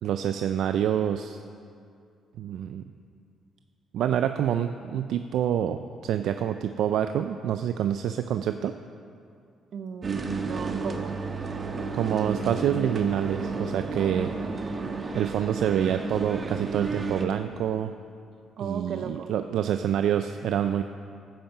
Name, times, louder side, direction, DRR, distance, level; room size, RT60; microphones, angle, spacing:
voice 1, 0.0-1.4 2.4-2.8 3.9-8.7 11.9-14.3 15.1-17.9 18.6-20.8, right 9 dB, 80° right, 8 dB, 0.4 m, -27 dB
voice 2, 9.7-11.2 18.6-19.3, right 6 dB, 65° right, 9 dB, 0.8 m, -36 dB
sound 1, 10.0-17.2, right 4 dB, 35° right, 1.2 m, -32 dB
11.5 x 9.3 x 6.6 m, 2.4 s
cardioid pair, 90°, 0 cm